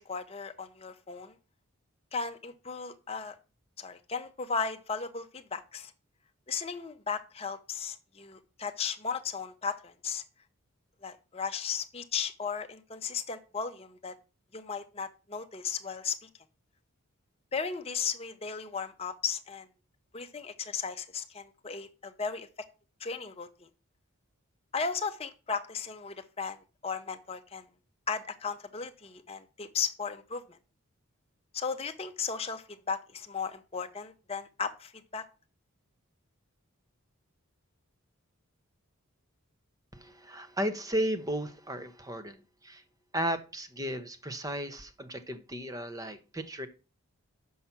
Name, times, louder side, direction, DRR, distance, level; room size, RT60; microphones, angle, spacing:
voice 1, 0.0-1.3 2.1-3.4 3.8-5.9 6.5-10.2 11.0-14.1 14.5-16.3 17.5-19.7 20.1-22.5 23.0-23.7 24.7-27.7 28.1-30.6 31.5-35.2, left 5 dB, 25° left, 7 dB, 0.7 m, -36 dB
voice 2, 39.9-42.4 42.6-42.8 43.1-46.7, equal, 15° right, 11 dB, 0.7 m, -34 dB
7.3 x 5.6 x 5.8 m, 0.34 s
head